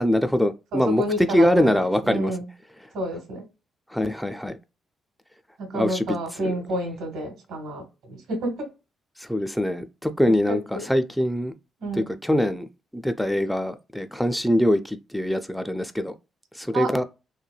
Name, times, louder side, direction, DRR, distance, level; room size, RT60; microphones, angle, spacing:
voice 1, 0.0-2.4 3.9-4.6 5.7-6.6 9.2-11.5 11.9-12.7 12.9-16.1 16.5-17.0, left 1 dB, 5° left, 0.4 m, -23 dB
voice 2, 0.7-2.4 2.9-3.4 5.6-8.7 10.5-10.9 11.8-12.1 16.7-16.9, right 1 dB, 75° right, 1.2 m, -30 dB
3.2 x 2.1 x 2.2 m
hypercardioid pair, 45°, 0 cm